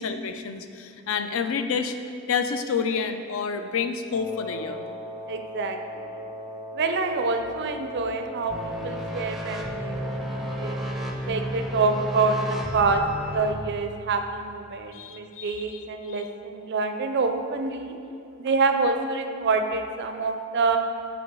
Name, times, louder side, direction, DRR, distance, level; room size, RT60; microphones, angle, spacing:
voice 1, 0.0-2.0 2.3-4.8 14.9-16.3, left 6 dB, 65° left, 8 dB, 0.4 m, -29 dB
Wind instrument woodwind instrument, 4.1-10.9, left 1 dB, 25° left, 0.8 m, -38 dB
voice 2, 5.3-5.8 6.7-10.8 11.2-13.0 13.3-17.9 18.4-20.8, right 4 dB, 55° right, 6 dB, 0.5 m, -26 dB
sound 1, 8.5-13.5, equal, ahead, 0.5 m, -32 dB
7.0 x 4.7 x 3.7 m, 2.8 s
head